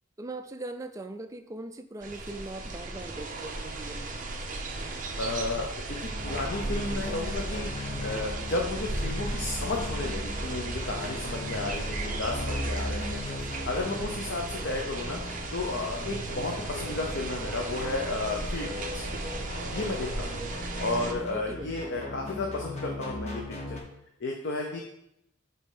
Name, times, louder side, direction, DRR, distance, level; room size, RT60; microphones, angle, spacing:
voice 1, 0.2-4.2 21.2-21.7, right 2 dB, 15° right, 7 dB, 0.4 m, -40 dB
sound 1, 2.0-21.1, right 2 dB, 40° right, 0.7 m, -35 dB
voice 2, 5.2-7.7 8.0-13.2 13.6-15.2 15.5-19.0 19.7-20.3 20.8-23.8 24.2-24.8, left 2 dB, 60° left, 0 dB, 0.7 m, -33 dB
sound 2, 6.1-23.8, left 1 dB, 35° left, 1.0 m, -38 dB
5.4 x 4.3 x 4.9 m, 0.78 s
head